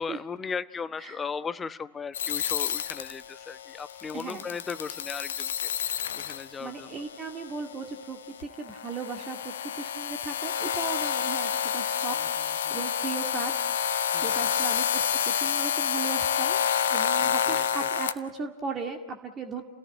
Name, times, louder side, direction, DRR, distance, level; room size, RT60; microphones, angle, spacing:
voice 1, 0.0-7.0 12.2-12.3 12.6-12.8 14.1-14.5 17.2-17.9, left 5 dB, 15° left, 14 dB, 0.9 m, -37 dB
sound 1, 2.1-18.1, left 8 dB, 60° left, 1.1 m, -29 dB
voice 2, 6.6-16.6 16.9-19.6, right 4 dB, 25° right, 4 dB, 2.1 m, -37 dB
29.5 x 18.0 x 8.8 m, 1.1 s
figure-of-eight pair, 90°, 0 cm